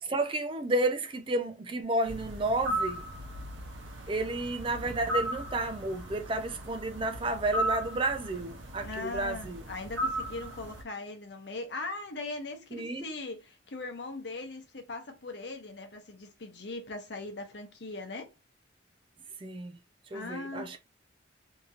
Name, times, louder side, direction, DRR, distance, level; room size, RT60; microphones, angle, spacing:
voice 1, 0.0-3.0 4.1-9.6 12.7-13.0 19.4-19.8 20.1-20.8, right 2 dB, 30° right, 0.4 m, -31 dB
sound 1, 2.1-10.8, right 1 dB, 85° right, 0.7 m, -36 dB
voice 2, 8.8-18.3 20.1-20.8, left 2 dB, 70° left, 0.8 m, -40 dB
2.8 x 2.8 x 2.4 m
head